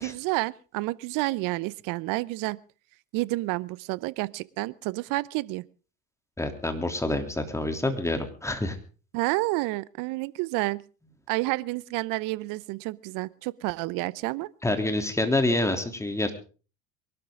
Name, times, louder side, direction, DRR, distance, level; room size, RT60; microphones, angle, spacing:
voice 1, 0.0-2.6 3.1-5.6 9.1-10.8 11.3-14.5, right 21 dB, 55° right, 21 dB, 0.8 m, -29 dB
voice 2, 6.4-8.8 14.6-16.3, left 2 dB, 5° left, 6 dB, 3.2 m, -27 dB
23.0 x 12.5 x 3.8 m, 0.36 s
hypercardioid pair, 85°, 40 cm